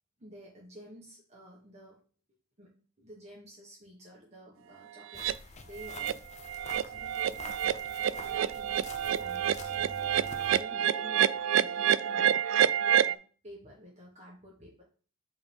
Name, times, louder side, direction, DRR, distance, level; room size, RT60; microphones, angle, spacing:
voice 1, 0.2-2.0 2.6-6.2 6.7-7.8 8.1-12.3 12.8-14.8, equal, 35° right, -3 dB, 1.6 m, -51 dB
sound 1, 5.1-10.6, left 3 dB, 35° left, 0.6 m, -47 dB
sound 2, 5.2-5.3 5.8-6.1 6.4-13.1, right 9 dB, 70° right, 0.3 m, -28 dB
8.4 x 4.0 x 3.5 m, 0.39 s
head